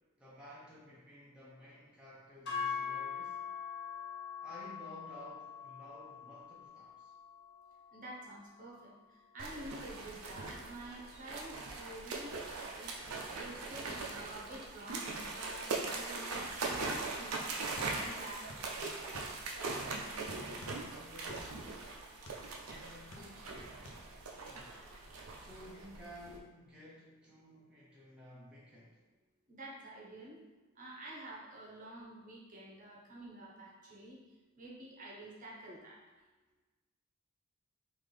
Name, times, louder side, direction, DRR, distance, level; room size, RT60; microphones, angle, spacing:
voice 1, 0.2-3.4 4.4-7.1 20.4-21.7 22.7-23.9 24.3-24.8 25.4-29.0, equal, 5° right, -7 dB, 0.5 m, -54 dB
sound 1, 2.5-10.7, left 6 dB, 50° left, 0.8 m, -44 dB
voice 2, 7.9-12.9 13.4-17.4 17.8-18.6 29.5-30.4 30.8-34.2 34.6-36.0, right 1 dB, 40° right, -3 dB, 0.8 m, -49 dB
sound 2, 9.4-26.4, right 3 dB, 80° right, 0.6 m, -41 dB
sound 3, 17.8-18.7 19.0-20.1 20.6-22.5 22.9-23.6 23.9-24.0, left 1 dB, 85° left, 0.6 m, -52 dB
3.7 x 2.6 x 3.3 m, 1.2 s
head